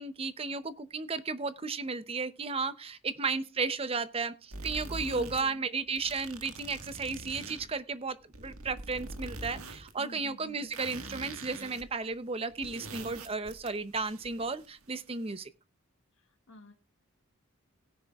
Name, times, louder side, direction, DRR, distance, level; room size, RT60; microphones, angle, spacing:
voice 1, 0.0-15.5, right 4 dB, 25° right, 13 dB, 0.7 m, -34 dB
sound 1, 4.5-5.4 5.9-7.7 8.2-9.9 10.2-10.3 10.7-11.9 12.1-12.2 12.5-14.9, right 2 dB, 75° right, 1.6 m, -44 dB
voice 2, 5.0-5.6 10.0-10.7 16.1-16.7, left 2 dB, 65° left, 4 dB, 1.1 m, -48 dB
17.0 x 9.9 x 2.3 m, 0.29 s
head